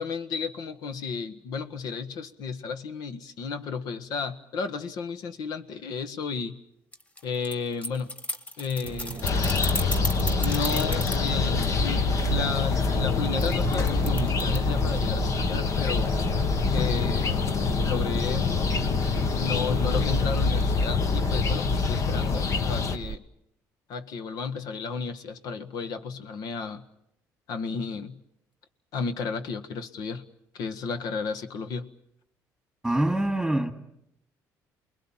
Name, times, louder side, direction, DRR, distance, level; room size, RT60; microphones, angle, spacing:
voice 1, 0.0-6.6 7.2-8.1 8.6-9.3 10.4-16.1 16.7-17.4 17.9-18.6 19.4-23.2 23.9-26.8 27.5-28.2 28.9-30.3 30.5-31.9, left 5 dB, 70° left, 1.6 m, -33 dB
sound 1, 6.9-11.3 13.4-14.6, left 1 dB, 20° left, 1.5 m, -33 dB
sound 2, 8.8-23.2, right 8 dB, 50° right, 0.9 m, -36 dB
sound 3, 9.2-23.0, left 4 dB, 50° left, 1.4 m, -25 dB
voice 2, 32.8-33.7, right 1 dB, ahead, 2.6 m, -24 dB
29.0 x 21.5 x 7.4 m
cardioid pair, 105°, 7 cm